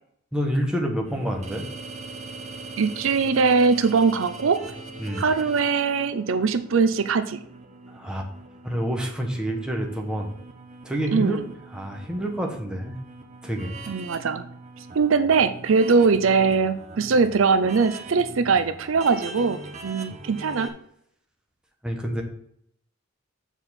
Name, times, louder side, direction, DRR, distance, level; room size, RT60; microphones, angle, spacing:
voice 1, 0.3-1.7 5.0-5.3 7.9-8.3 8.6-10.3 10.8-11.4 11.7-13.0 13.4-13.8 21.8-22.2, equal, 5° right, 1 dB, 1.1 m, -28 dB
sound 1, 1.0-20.7, right 3 dB, 35° right, 1.0 m, -41 dB
voice 2, 2.8-4.6 5.2-7.4 11.1-11.4 13.9-14.5 14.9-20.7, right 5 dB, 70° right, 11 dB, 0.5 m, -21 dB
7.0 x 4.4 x 5.7 m, 0.70 s
head